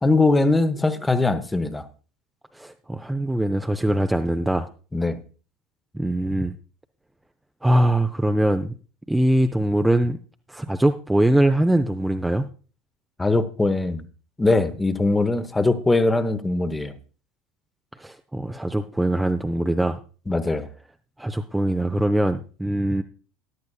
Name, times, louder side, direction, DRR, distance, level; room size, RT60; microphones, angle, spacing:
voice 1, 0.0-1.8 4.9-5.2 13.2-14.0 14.4-16.9 20.3-20.7, left 2 dB, 15° left, 0.9 m, -21 dB
voice 2, 2.5-4.7 5.9-6.5 7.6-8.7 9.1-10.2 10.5-12.5 18.0-20.0 21.2-23.0, right 1 dB, 5° right, 0.5 m, -22 dB
14.5 x 10.5 x 2.3 m
figure-of-eight pair, 70°, 0 cm